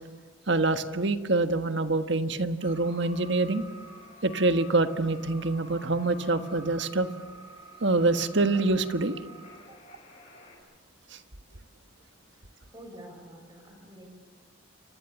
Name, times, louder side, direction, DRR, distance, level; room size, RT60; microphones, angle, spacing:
voice 1, 0.5-3.6 4.2-7.1 7.8-9.2, right 2 dB, 65° right, 9 dB, 1.4 m, -25 dB
sound 1, 2.6-10.6, equal, 35° left, 7.3 m, -49 dB
voice 2, 12.7-14.2, equal, 20° right, 4 dB, 6.0 m, -48 dB
29.0 x 25.0 x 7.2 m, 1.4 s
head